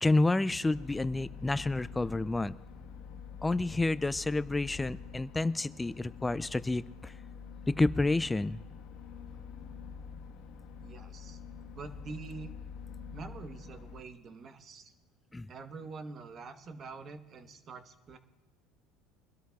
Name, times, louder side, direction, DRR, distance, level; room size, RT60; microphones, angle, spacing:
voice 1, 0.0-2.5 3.4-7.1 7.7-8.6 15.3-15.5, left 2 dB, 10° left, 16 dB, 0.3 m, -29 dB
sound 1, 0.7-14.0, left 6 dB, 65° left, 1.3 m, -46 dB
voice 2, 10.8-11.4 11.7-12.5 13.1-14.9 15.5-18.2, right 4 dB, 40° right, 9 dB, 1.0 m, -45 dB
24.5 x 12.5 x 2.3 m, 1.2 s
supercardioid pair, 115°, 0 cm